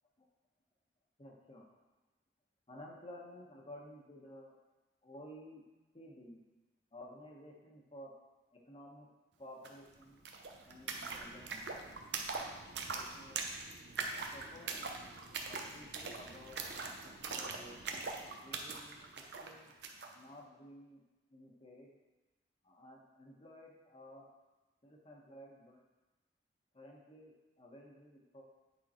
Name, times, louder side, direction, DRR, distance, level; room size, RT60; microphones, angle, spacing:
voice 1, 1.2-1.7 2.7-4.6 5.0-5.6 5.9-6.4 6.9-8.1 8.5-9.1 9.4-10.2 10.7-11.7 12.9-13.4 14.3-15.0 15.5-17.8 18.4-19.0 19.4-19.7 20.1-21.0 21.3-21.9 22.6-24.3 24.8-25.8 26.7-28.4, left 1 dB, 30° left, -1 dB, 1.2 m, -54 dB
sound 1, 9.6-9.7 10.0-20.1, right 4 dB, 70° right, 0.7 m, -42 dB
8.8 x 3.8 x 4.3 m, 1.1 s
head